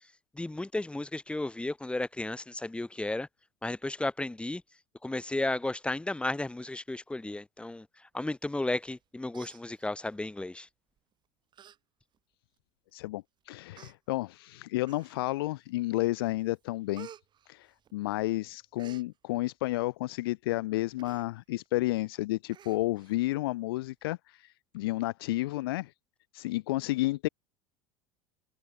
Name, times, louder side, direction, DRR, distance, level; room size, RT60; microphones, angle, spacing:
voice 1, 0.3-3.3 3.6-4.6 5.0-10.7, left 2 dB, 5° left, 6.5 m, -34 dB
Human voice, 8.8-9.0 9.3-10.2 11.0-11.1 11.5-11.8 12.1-12.2 13.0-13.1 13.7-13.9 14.8-15.4 15.9-16.2 16.5-18.2 18.5-19.1 21.0-21.3 21.6-21.7 22.0-22.1 22.5-23.2 23.5-23.6, right 9 dB, 35° right, 4.9 m, -52 dB
voice 2, 12.9-17.1 17.5-17.7 17.9-24.4 24.7-25.9 26.3-27.3, left 18 dB, 60° left, 1.4 m, -31 dB
figure-of-eight pair, 75°, 14 cm